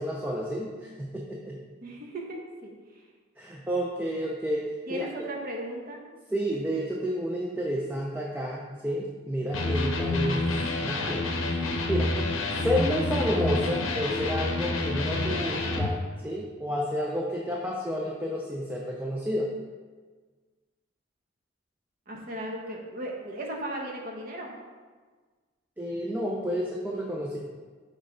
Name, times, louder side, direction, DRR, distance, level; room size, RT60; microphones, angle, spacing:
voice 1, 0.0-1.6 3.4-5.1 6.3-10.5 10.8-11.2 11.9-12.1 12.6-19.5 25.8-27.4, equal, 10° right, -2 dB, 0.4 m, -30 dB
voice 2, 1.8-2.7 4.9-6.0 22.1-24.5, right 1 dB, 45° right, 0 dB, 1.0 m, -36 dB
Electric guitar, 9.5-15.9, left 2 dB, 85° left, 0.7 m, -28 dB
6.3 x 3.2 x 4.9 m, 1.5 s
head